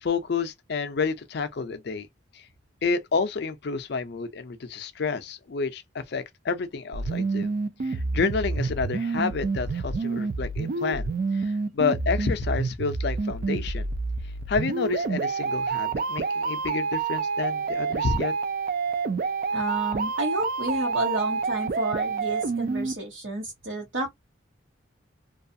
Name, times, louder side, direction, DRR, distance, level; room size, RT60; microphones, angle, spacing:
voice 1, 0.0-2.1 2.3-2.4 2.8-7.5 7.8-13.9 14.5-18.3, left 4 dB, 55° left, 0.4 m, -29 dB
sound 1, 6.9-22.9, right 4 dB, 45° right, 0.3 m, -28 dB
voice 2, 19.5-24.1, right 1 dB, 75° right, 0.9 m, -30 dB
2.6 x 2.3 x 2.6 m
head